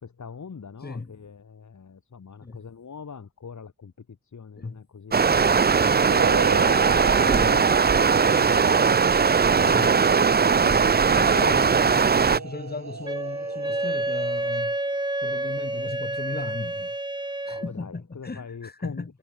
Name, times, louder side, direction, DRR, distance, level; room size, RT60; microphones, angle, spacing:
voice 1, 0.0-6.6 7.3-7.8 8.3-9.3 17.5-19.2, left 6 dB, 60° left, 2.9 m, -43 dB
Stream, 5.1-12.4, right 5 dB, 30° right, 0.5 m, -19 dB
sound 1, 6.0-14.6, right 5 dB, 55° right, 3.6 m, -34 dB
voice 2, 7.2-7.6 9.6-10.0 10.5-14.8 15.2-16.9 17.5-19.1, left 3 dB, 30° left, 1.9 m, -36 dB
Wind instrument woodwind instrument, 13.0-17.7, right 1 dB, 15° right, 1.9 m, -29 dB
wide cardioid pair, 85°, 33 cm